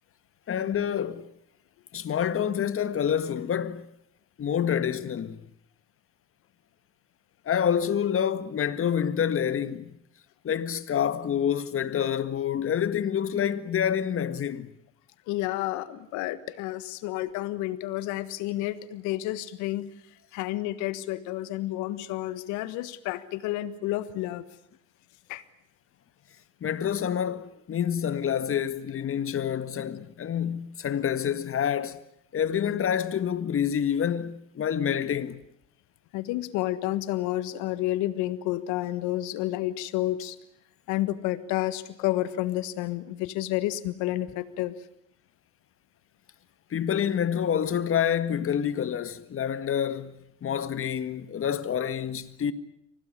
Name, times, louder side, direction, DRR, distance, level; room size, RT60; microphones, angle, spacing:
voice 1, 0.5-1.3 1.9-3.9 4.4-5.4 7.5-9.9 10.4-14.7 26.6-32.0 32.3-35.4 46.7-52.5, left 8 dB, 50° left, 1.8 m, -27 dB
voice 2, 15.3-19.9 20.3-24.4 25.3-25.4 36.1-40.4 40.9-44.8, left 15 dB, 80° left, 1.5 m, -30 dB
24.5 x 18.5 x 9.7 m
supercardioid pair, 65°, 29 cm